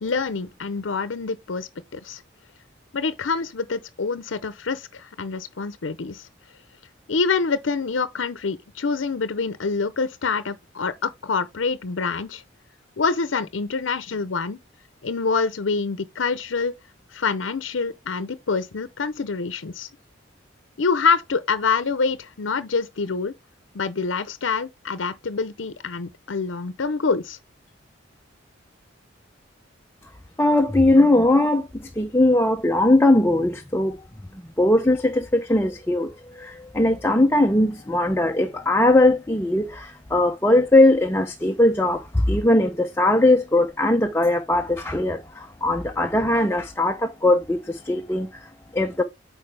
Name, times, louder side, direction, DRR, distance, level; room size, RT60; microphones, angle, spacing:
voice 1, 0.0-2.2 2.9-6.3 7.1-12.4 13.0-14.6 15.0-16.7 17.1-19.9 20.8-23.3 23.7-27.4, left 4 dB, 80° left, 0.6 m, -26 dB
voice 2, 30.4-34.0 34.3-49.0, left 1 dB, 15° left, 0.6 m, -20 dB
8.7 x 4.6 x 3.3 m
head